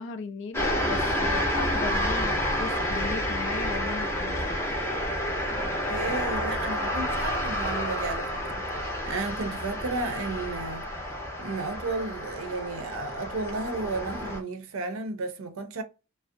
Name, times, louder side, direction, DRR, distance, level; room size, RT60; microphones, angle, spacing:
voice 1, 0.0-4.5, left 5 dB, 60° left, 0.4 m, -37 dB
sound 1, 0.5-14.4, equal, 10° left, 0.6 m, -29 dB
voice 2, 5.9-10.8 11.4-15.8, right 3 dB, 70° right, 0.5 m, -33 dB
2.5 x 2.0 x 2.5 m
head